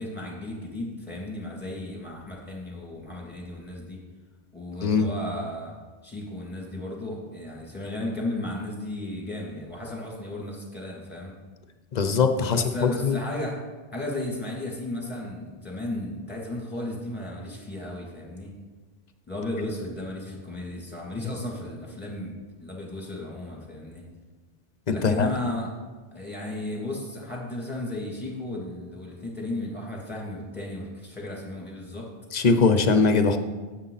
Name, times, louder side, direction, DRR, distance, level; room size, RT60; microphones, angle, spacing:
voice 1, 0.0-4.0 4.5-5.7 6.0-11.3 12.4-13.6 13.9-18.5 19.3-22.3 22.6-24.0 24.9-25.7 26.1-32.1, left 1 dB, 10° left, -3 dB, 2.6 m, -34 dB
voice 2, 4.8-5.1 11.9-13.2 24.9-25.3 32.3-33.4, left 4 dB, 45° left, 8 dB, 0.7 m, -21 dB
9.8 x 8.7 x 4.1 m, 1.3 s
omnidirectional pair, 1.1 m